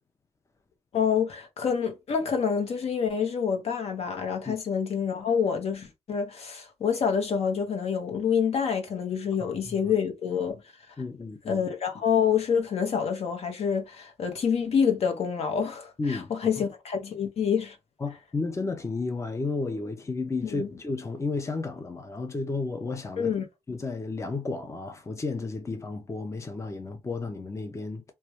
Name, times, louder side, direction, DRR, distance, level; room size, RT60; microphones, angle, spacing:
voice 1, 0.9-10.6 11.5-17.8 20.4-20.7 23.2-23.4, left 7 dB, 60° left, 0.8 m, -27 dB
voice 2, 9.4-9.7 11.0-11.6 16.0-16.6 18.0-23.3 23.7-28.0, left 3 dB, 25° left, 0.6 m, -32 dB
2.2 x 2.2 x 2.9 m
hypercardioid pair, 45°, 12 cm